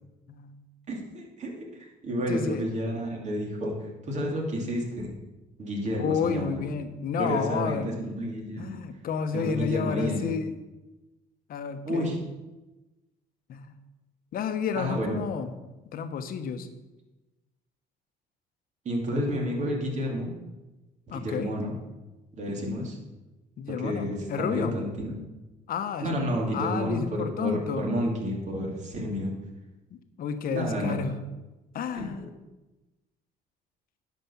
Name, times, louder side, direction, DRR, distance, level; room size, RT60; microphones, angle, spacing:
voice 1, 0.9-1.6 2.0-5.1 5.6-6.6 7.2-8.8 9.3-10.3 11.8-12.2 14.7-15.2 18.8-20.3 21.1-21.8 22.4-23.0 23.8-25.1 26.0-29.3 30.5-31.0 31.9-32.1, equal, 45° right, 0 dB, 2.8 m, -30 dB
voice 2, 2.3-2.6 6.0-8.0 8.6-10.5 11.5-12.2 13.5-13.6 14.3-15.5 15.9-16.7 21.1-21.5 23.6-24.8 25.7-26.1 26.5-27.9 29.9-31.1 31.7-32.3, left 6 dB, 60° left, 8 dB, 1.1 m, -31 dB
10.5 x 5.3 x 7.1 m, 1.1 s
cardioid pair, 110°, 17 cm